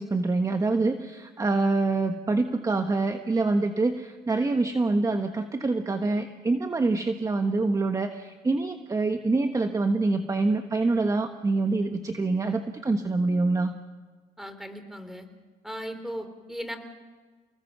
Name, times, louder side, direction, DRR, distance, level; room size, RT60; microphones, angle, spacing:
voice 1, 0.0-13.7, right 3 dB, 20° right, 6 dB, 1.3 m, -25 dB
voice 2, 14.4-15.3 15.6-16.8, equal, ahead, 8 dB, 3.4 m, -37 dB
30.0 x 20.5 x 6.1 m, 1.4 s
cardioid pair, 110°, 17 cm